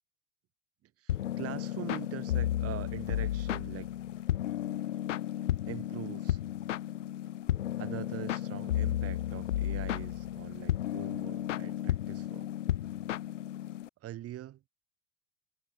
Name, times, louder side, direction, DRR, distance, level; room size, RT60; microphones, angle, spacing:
voice 1, 1.0-3.9 5.6-6.4 7.8-12.5 14.0-14.6, right 13 dB, 40° right, 2.3 m, -43 dB
sound 1, 1.1-13.9, left 12 dB, 80° left, 0.7 m, -33 dB
figure-of-eight pair, 75°, 36 cm